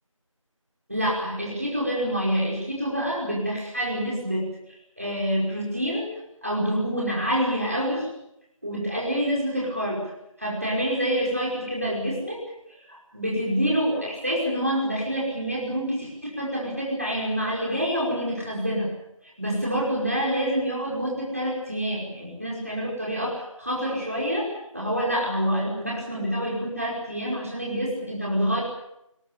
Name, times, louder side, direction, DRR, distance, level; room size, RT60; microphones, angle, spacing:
voice 1, 0.9-6.1 6.4-8.1 8.6-10.0 10.4-12.4 12.7-18.9 19.4-28.6, equal, 25° right, -4 dB, 5.3 m, -27 dB
21.5 x 20.0 x 8.7 m, 0.82 s
figure-of-eight pair, 180°, 17 cm